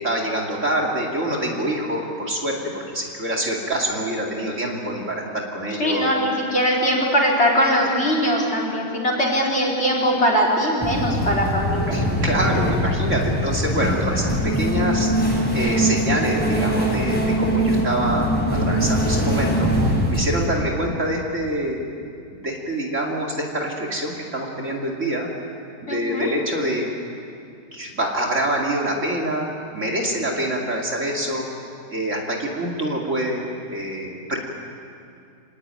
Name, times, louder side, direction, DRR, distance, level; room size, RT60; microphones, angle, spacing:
voice 1, 0.0-6.1 11.9-15.1 15.5-19.7 20.1-21.8 22.3-25.3 25.9-26.9 27.7-29.5 29.7-31.4 31.9-34.4, right 1 dB, 45° right, 0 dB, 2.9 m, -25 dB
voice 2, 5.8-11.9 25.9-26.3, equal, 35° left, -1 dB, 4.6 m, -21 dB
sound 1, 10.8-20.5, equal, 5° left, 5.1 m, -22 dB
26.0 x 19.0 x 9.1 m, 2.5 s
omnidirectional pair, 1.9 m